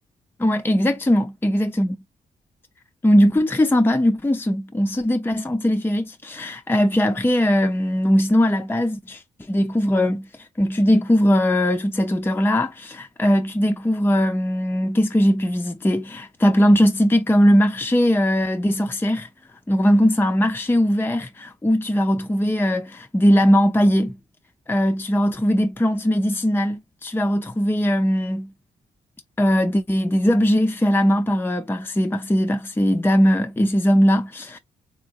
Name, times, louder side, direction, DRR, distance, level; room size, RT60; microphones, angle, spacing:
voice 1, 0.4-2.0 3.0-19.3 19.7-24.2 24.7-28.5 29.4-34.6, equal, 10° left, 0.6 m, -20 dB
3.6 x 3.4 x 2.4 m
hypercardioid pair, 40°, 19 cm